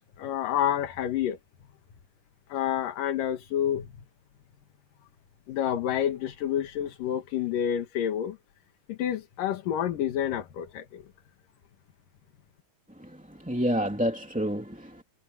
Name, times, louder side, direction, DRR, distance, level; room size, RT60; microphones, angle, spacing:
voice 1, 0.0-1.4 2.5-3.9 5.5-8.4 8.9-11.0, left 10 dB, 80° left, 3.3 m, -29 dB
voice 2, 13.0-15.0, equal, 5° right, 1.8 m, -29 dB
omnidirectional pair, 3.8 m